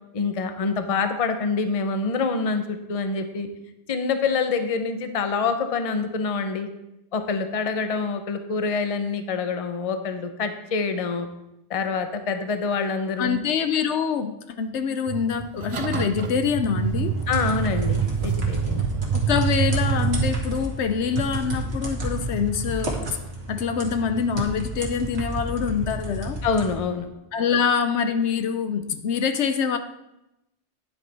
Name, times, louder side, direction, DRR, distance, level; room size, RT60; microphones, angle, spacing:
voice 1, 0.1-3.5 3.9-6.7 7.1-11.3 11.7-13.4 17.3-18.8 26.4-27.1, left 4 dB, 35° left, 7 dB, 0.7 m, -26 dB
voice 2, 13.2-17.2 19.1-23.0 23.5-26.4 27.3-29.8, left 6 dB, 75° left, 9 dB, 0.9 m, -25 dB
sound 1, 15.1-20.3, right 7 dB, 45° right, 0.4 m, -26 dB
sound 2, 16.7-26.8, right 1 dB, 60° right, 1.8 m, -31 dB
10.0 x 8.0 x 3.4 m, 0.90 s
omnidirectional pair, 1.2 m